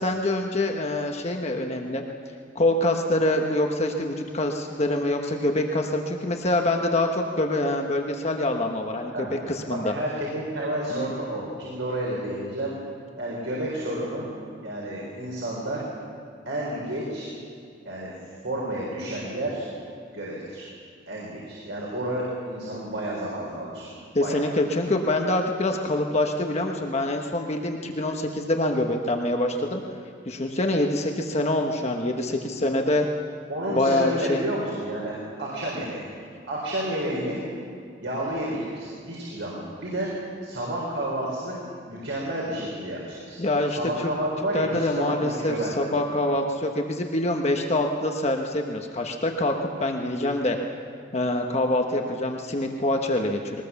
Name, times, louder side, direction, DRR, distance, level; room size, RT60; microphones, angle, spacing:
voice 1, 0.0-2.0 2.5-9.9 10.9-11.1 24.1-29.8 30.3-33.1 33.7-34.4 43.4-44.1 44.5-50.6 51.1-53.6, left 1 dB, 35° left, 3 dB, 1.1 m, -25 dB
voice 2, 9.7-12.7 13.2-14.3 14.6-15.8 16.4-17.3 17.8-18.1 18.4-19.7 20.1-20.7 21.1-23.9 24.2-24.4 33.5-35.1 35.4-36.1 36.5-37.4 38.0-40.1 40.4-41.5 41.9-43.4 43.7-45.9, right 1 dB, 90° right, -5 dB, 4.4 m, -30 dB
21.0 x 19.0 x 7.1 m, 2.3 s
head